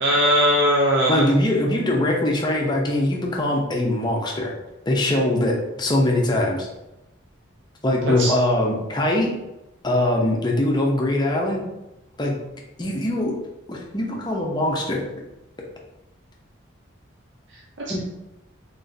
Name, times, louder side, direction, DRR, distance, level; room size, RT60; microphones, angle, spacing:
voice 1, 0.0-1.3 8.2-8.3, equal, 60° right, -3 dB, 0.5 m, -19 dB
voice 2, 1.1-4.5 4.9-6.7 7.8-9.3 9.8-11.6 12.2-12.4 12.8-13.3 13.7-15.0 17.9-18.0, left 1 dB, 20° left, -1 dB, 0.7 m, -22 dB
3.8 x 3.6 x 2.7 m, 0.96 s
head